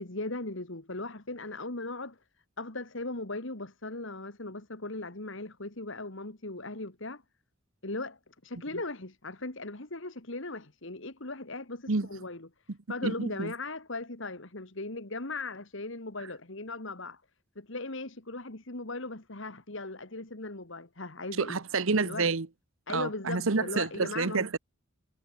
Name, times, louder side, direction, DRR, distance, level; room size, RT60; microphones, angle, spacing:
voice 1, 0.0-2.2 2.6-7.2 7.8-12.5 12.9-17.2 17.6-21.6 22.0-22.3 22.9-24.5, left 2 dB, 60° left, 2.0 m, -38 dB
voice 2, 13.0-13.5 21.4-22.5 22.9-24.6, right 4 dB, 70° right, 1.0 m, -28 dB
head